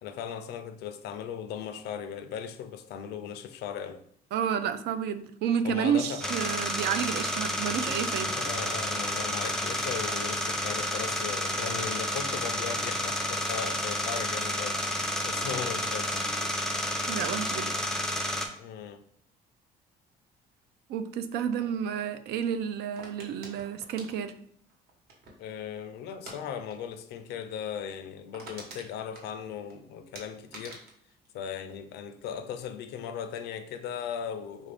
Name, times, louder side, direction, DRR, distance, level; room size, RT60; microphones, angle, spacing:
voice 1, 0.0-4.0 5.6-6.4 8.4-16.5 18.6-19.0 21.7-21.8 25.4-30.9 31.3-34.7, left 8 dB, 80° left, 0.4 m, -38 dB
voice 2, 4.3-8.3 17.1-17.7 20.9-24.3, right 8 dB, 80° right, 0.4 m, -30 dB
sound 1, 6.2-18.5, equal, 5° left, 0.5 m, -30 dB
sound 2, 23.0-25.5 26.1-26.4 26.7-26.9 27.2-27.3 27.7-27.8 28.1-29.7 30.1-32.2 32.5-32.9, right 2 dB, 65° right, 1.2 m, -47 dB
3.7 x 2.5 x 3.3 m
cardioid pair, 110°, 17 cm